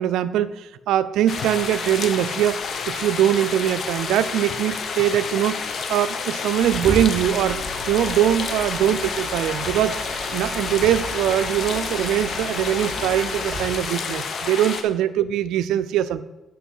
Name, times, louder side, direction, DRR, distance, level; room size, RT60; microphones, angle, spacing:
voice 1, 0.0-2.6 2.9-5.6 5.9-10.0 10.3-16.2, right 11 dB, 85° right, 13 dB, 0.4 m, -22 dB
sound 1, 1.3-14.8, left 5 dB, 55° left, 0.9 m, -29 dB
Mechanisms, 6.5-13.8, right 1 dB, ahead, 2.1 m, -34 dB
8.5 x 5.7 x 5.5 m, 1.0 s
cardioid pair, 90°, 0 cm